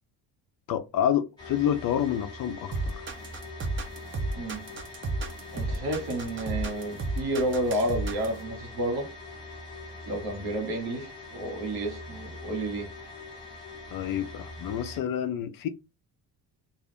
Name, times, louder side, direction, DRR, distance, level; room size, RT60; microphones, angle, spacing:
voice 1, 0.7-3.0 13.9-15.7, left 9 dB, 55° left, 0.5 m, -28 dB
sound 1, 1.4-15.0, left 2 dB, 10° left, 1.4 m, -43 dB
sound 2, 2.7-8.4, right 2 dB, 30° right, 0.6 m, -32 dB
voice 2, 4.3-4.6 5.5-9.1 10.1-12.9, right 1 dB, 65° right, 1.2 m, -31 dB
2.4 x 2.4 x 3.4 m
cardioid pair, 125°, 41 cm